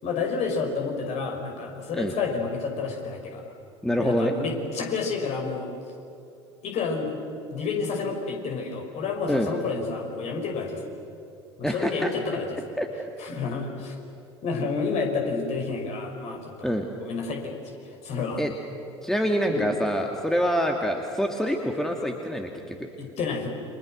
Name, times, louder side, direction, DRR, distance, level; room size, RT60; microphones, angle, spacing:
voice 1, 0.0-3.4 4.0-5.7 6.6-7.2 7.5-10.9 11.6-12.5 13.2-14.0 14.4-16.7 17.0-17.6 17.8-18.4 19.5-19.6 23.0-23.5, left 4 dB, 45° left, 2 dB, 5.8 m, -30 dB
voice 2, 3.8-4.3 9.3-9.5 11.6-12.1 12.8-12.9 16.6-16.9 18.4-18.5 19.0-22.9, equal, 5° left, 3 dB, 2.2 m, -26 dB
30.0 x 26.0 x 6.4 m, 2.6 s
figure-of-eight pair, 70°, 15 cm